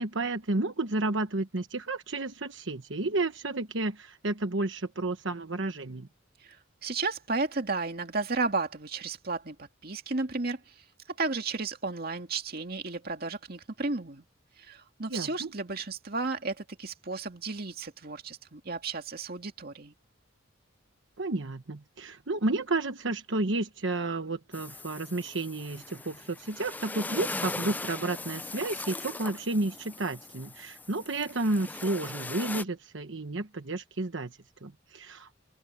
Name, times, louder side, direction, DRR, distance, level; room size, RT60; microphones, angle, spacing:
voice 1, 0.0-6.1 15.1-15.5 21.2-35.3, right 2 dB, 65° right, 1.2 m, -31 dB
voice 2, 6.8-10.7 11.1-14.2 14.6-19.9, right 3 dB, 50° right, 2.3 m, -33 dB
sound 1, 24.5-32.6, left 2 dB, 10° left, 0.3 m, -39 dB
open air
head